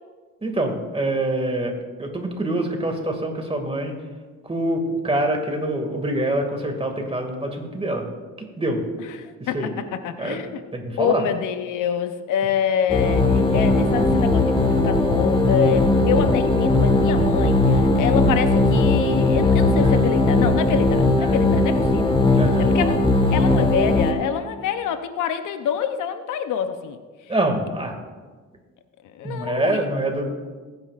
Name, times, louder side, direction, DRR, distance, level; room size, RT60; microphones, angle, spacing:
voice 1, 0.4-3.9 4.4-8.1 8.4-8.8 9.4-9.7 10.2-10.5 10.7-11.2 21.2-21.3 22.3-22.9 27.3-27.9 29.2-30.2, right 1 dB, 20° right, 3 dB, 2.2 m, -25 dB
voice 2, 9.2-9.7 10.0-10.6 11.0-22.2 22.6-27.0 29.1-29.8, left 8 dB, 85° left, 9 dB, 0.8 m, -26 dB
sound 1, 12.9-24.1, left 2 dB, 15° left, 1.5 m, -18 dB
20.0 x 9.8 x 2.5 m, 1.4 s
cardioid pair, 90°, 30 cm